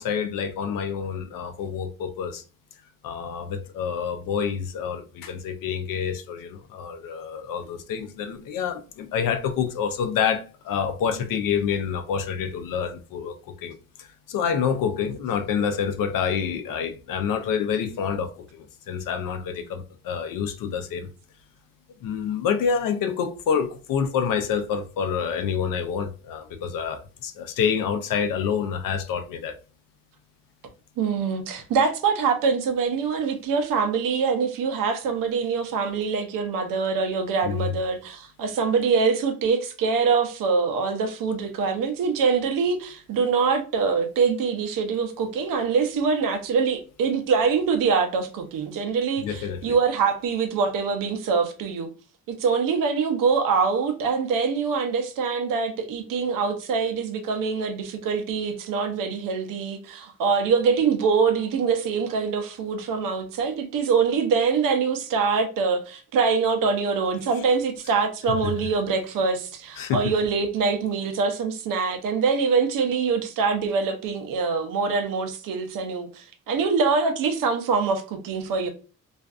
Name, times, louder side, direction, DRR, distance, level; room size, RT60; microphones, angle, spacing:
voice 1, 0.0-2.4 3.0-21.1 22.0-29.6 37.4-37.7 49.2-49.8 68.3-68.5 69.8-70.1, left 7 dB, 85° left, 0.5 m, -27 dB
voice 2, 31.0-51.9 52.3-78.7, right 5 dB, 80° right, 0.6 m, -24 dB
2.5 x 2.3 x 2.4 m
cardioid pair, 160°, 32 cm